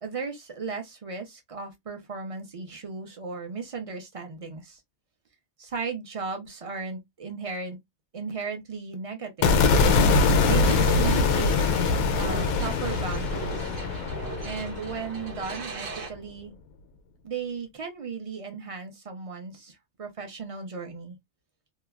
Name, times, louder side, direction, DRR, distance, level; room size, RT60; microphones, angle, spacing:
voice 1, 0.0-4.8 5.6-7.8 8.1-9.5 10.5-11.7 12.1-13.8 14.4-16.5 17.2-21.2, right 5 dB, 45° right, 0.4 m, -36 dB
sound 1, 9.4-15.7, left 4 dB, 90° left, 1.1 m, -23 dB
sound 2, 10.5-16.1, right 4 dB, 70° right, 1.1 m, -40 dB
2.9 x 2.2 x 2.3 m
omnidirectional pair, 1.5 m